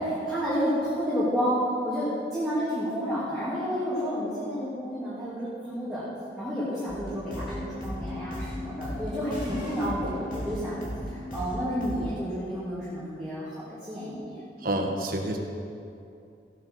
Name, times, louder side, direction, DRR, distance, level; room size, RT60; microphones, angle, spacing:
voice 1, 0.0-6.1 6.4-10.8 11.1-14.4, equal, ahead, -12 dB, 2.8 m, -30 dB
sound 1, 6.9-12.1, left 1 dB, 50° left, 3.2 m, -36 dB
voice 2, 14.6-15.4, right 1 dB, 50° right, 1 dB, 1.4 m, -28 dB
16.0 x 8.7 x 4.8 m, 2.6 s
head